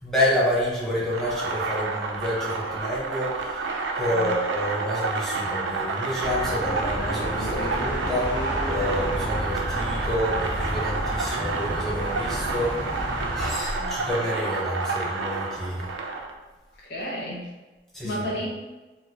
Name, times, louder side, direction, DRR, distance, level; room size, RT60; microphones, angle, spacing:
voice 1, 0.0-3.7 4.0-12.9 13.3-15.9 17.9-18.2, equal, 5° left, -8 dB, 0.9 m, -28 dB
sound 1, 1.1-16.3, right 3 dB, 85° right, 0.4 m, -29 dB
sound 2, 6.2-13.5, equal, 25° left, 1.2 m, -31 dB
voice 2, 13.8-14.1 16.8-17.5 18.0-18.6, equal, 65° left, -3 dB, 0.7 m, -32 dB
4.3 x 2.1 x 2.8 m, 1.2 s
head